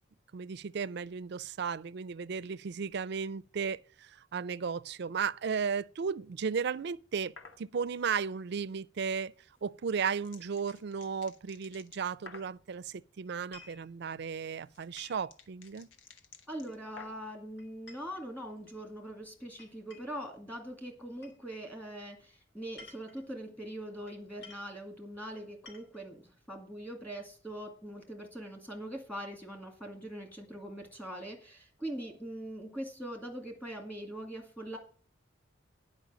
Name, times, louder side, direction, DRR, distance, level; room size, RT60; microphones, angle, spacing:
voice 1, 0.3-7.3 7.6-9.3 9.6-15.9, right 6 dB, 60° right, 0.4 m, -35 dB
sound 1, 7.4-7.6 9.5-12.6 14.2-17.4, left 4 dB, 80° left, 1.3 m, -53 dB
sound 2, 13.5-13.9 15.0-15.3 16.7-17.1 17.6-18.8 19.6-20.2 21.2-21.4 22.6-23.3 24.1-24.2 24.4-24.7 25.4-26.1, left 4 dB, 60° left, 3.5 m, -54 dB
voice 2, 16.5-34.8, right 1 dB, 10° left, 2.1 m, -42 dB
10.5 x 5.3 x 7.2 m
head